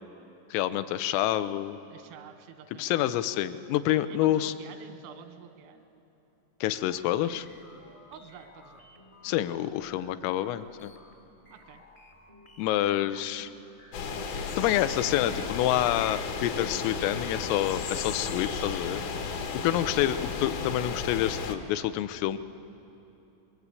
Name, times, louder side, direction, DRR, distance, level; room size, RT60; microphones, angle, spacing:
voice 1, 0.5-1.8 2.8-4.5 6.6-7.5 9.2-10.9 12.6-13.5 14.6-19.0 19.6-22.4, left 13 dB, 90° left, 12 dB, 3.4 m, -27 dB
voice 2, 1.9-3.0 4.1-5.8 8.1-8.9 11.5-11.8 13.3-13.8 19.5-19.7, right 7 dB, 90° right, 8 dB, 3.9 m, -49 dB
sound 1, 6.8-14.5, left 2 dB, 50° left, 0.6 m, -55 dB
sound 2, 13.9-21.5, left 5 dB, 70° left, 1.9 m, -34 dB
24.5 x 22.0 x 8.4 m, 3.0 s
omnidirectional pair, 5.7 m